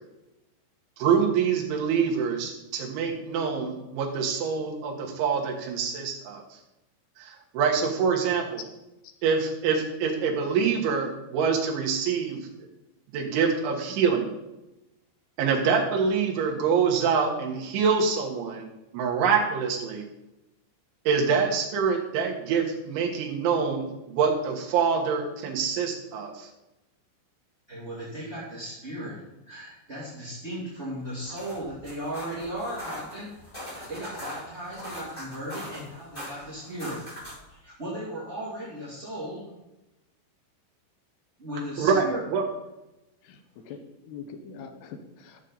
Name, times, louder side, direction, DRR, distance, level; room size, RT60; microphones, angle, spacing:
voice 1, 1.0-6.4 7.2-8.6 9.2-12.5 13.1-14.3 15.4-18.7 18.9-20.0 21.1-26.5 41.8-42.4, right 6 dB, 70° right, 0 dB, 3.7 m, -25 dB
voice 2, 27.7-33.3 33.7-37.0 37.5-39.5 41.4-42.2, right 1 dB, 25° right, -9 dB, 1.4 m, -36 dB
sound 1, 31.1-37.5, left 1 dB, 10° left, 3.7 m, -41 dB
voice 3, 43.7-45.4, left 6 dB, 75° left, 6 dB, 2.5 m, -43 dB
13.5 x 7.3 x 4.0 m, 0.96 s
omnidirectional pair, 5.9 m